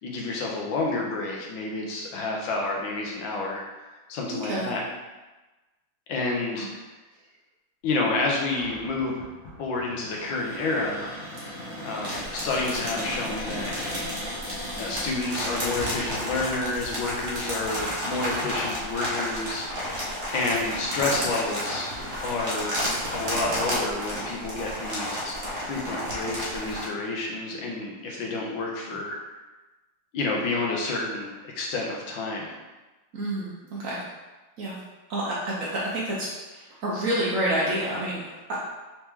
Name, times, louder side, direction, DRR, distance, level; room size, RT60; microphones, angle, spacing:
voice 1, 0.0-4.8 6.1-6.7 7.8-9.2 9.6-11.1 11.8-13.7 14.8-21.9 22.2-22.8 23.1-29.2 30.1-32.5, left 3 dB, 70° left, -1 dB, 1.4 m, -29 dB
voice 2, 4.3-4.7 6.6-6.7 33.1-34.0 34.6-34.8 35.1-38.6, right 1 dB, 80° right, -6 dB, 0.7 m, -29 dB
Cupboard open or close, 8.4-15.1, equal, 40° left, 0.8 m, -38 dB
sound 1, 12.0-26.9, equal, 45° right, 0.9 m, -32 dB
4.4 x 3.1 x 3.5 m, 1.1 s
omnidirectional pair, 2.3 m